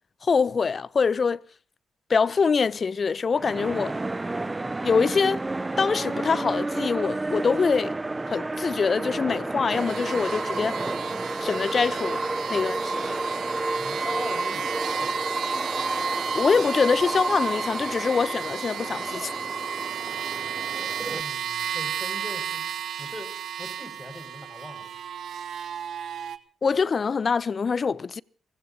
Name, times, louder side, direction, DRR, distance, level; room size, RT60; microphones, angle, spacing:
voice 1, 0.2-1.4 2.1-3.9 4.8-5.4 5.8-7.9 8.3-10.9 11.4-12.2 12.5-13.2 16.3-19.3 26.6-28.2, left 5 dB, 45° left, 0.7 m, -24 dB
sound 1, 3.3-21.2, right 2 dB, 25° right, 0.7 m, -30 dB
sound 2, 9.7-26.4, right 9 dB, 65° right, 1.0 m, -34 dB
voice 2, 13.6-15.2 20.3-23.3 23.6-25.0, left 1 dB, 20° left, 6.3 m, -42 dB
29.5 x 16.5 x 2.9 m
supercardioid pair, 50°, 0 cm